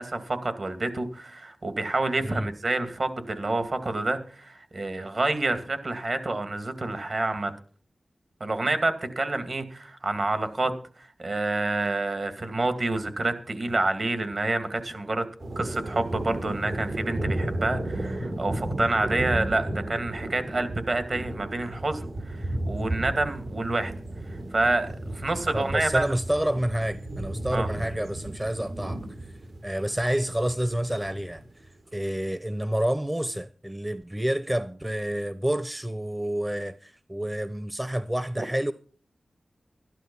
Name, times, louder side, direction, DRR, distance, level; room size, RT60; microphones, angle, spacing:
voice 1, 0.0-7.5 8.4-10.7 11.0-15.3 15.6-23.9 24.3-26.1 27.5-27.7 38.4-38.5, right 2 dB, 55° right, 2.2 m, -28 dB
sound 1, 15.4-31.5, right 1 dB, 80° right, 3.8 m, -34 dB
voice 2, 25.5-29.3 29.6-38.7, right 1 dB, 15° right, 0.7 m, -29 dB
12.5 x 11.5 x 5.4 m
cardioid pair, 55°, 0 cm